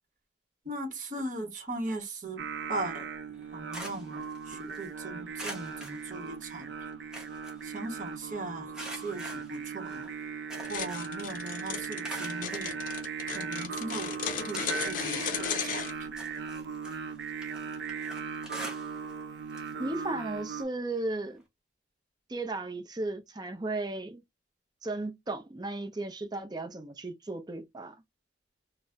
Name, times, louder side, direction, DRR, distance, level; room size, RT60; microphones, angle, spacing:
voice 1, 0.6-2.4 2.7-3.0 3.5-6.9 7.6-10.1 10.7-12.8 13.3-14.2 14.5-16.1, right 2 dB, 45° right, 1.0 m, -39 dB
Singing, 2.4-20.6, right 5 dB, 70° right, 0.5 m, -38 dB
sound 1, 3.3-4.9 5.4-6.6 6.9-8.2 8.7-11.2 11.5-12.7 13.4-13.5 14.0-15.1 15.4-19.2 19.5-19.7 20.1-20.2 21.4-21.5, right 1 dB, 5° right, 0.9 m, -45 dB
sound 2, 10.6-15.9, left 7 dB, 45° left, 0.5 m, -35 dB
voice 2, 19.8-21.4 22.3-24.2 24.8-28.0, right 2 dB, 20° right, 0.5 m, -35 dB
4.0 x 2.0 x 2.4 m
head